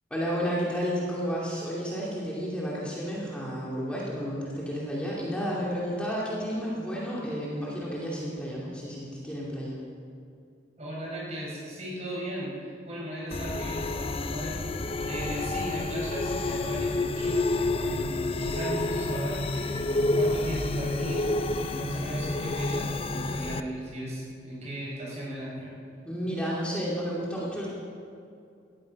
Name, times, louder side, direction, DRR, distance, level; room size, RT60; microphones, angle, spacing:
voice 1, 0.1-9.8 26.1-27.7, equal, 5° left, -6 dB, 2.5 m, -31 dB
voice 2, 10.8-25.8, right 1 dB, 40° right, -3 dB, 5.1 m, -36 dB
sound 1, 13.3-23.6, left 2 dB, 30° left, 0.5 m, -29 dB
17.0 x 14.0 x 5.3 m, 2.4 s
head